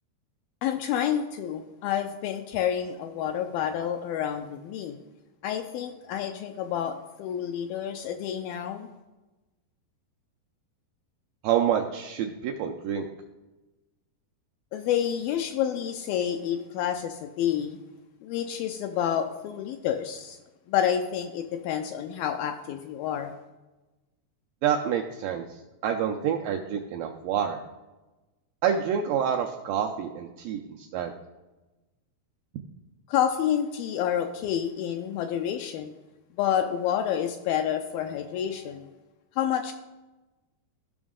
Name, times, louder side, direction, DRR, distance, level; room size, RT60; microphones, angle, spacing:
voice 1, 0.6-5.0 5.4-8.9 14.7-17.8 18.2-20.4 20.7-23.3 33.1-35.9 36.3-38.9 39.4-39.7, left 9 dB, 80° left, 6 dB, 2.2 m, -29 dB
voice 2, 11.4-13.1 24.6-25.5 25.8-27.6 28.6-31.1, right 8 dB, 85° right, 2 dB, 2.0 m, -27 dB
15.0 x 6.1 x 3.7 m, 1.1 s
omnidirectional pair, 4.6 m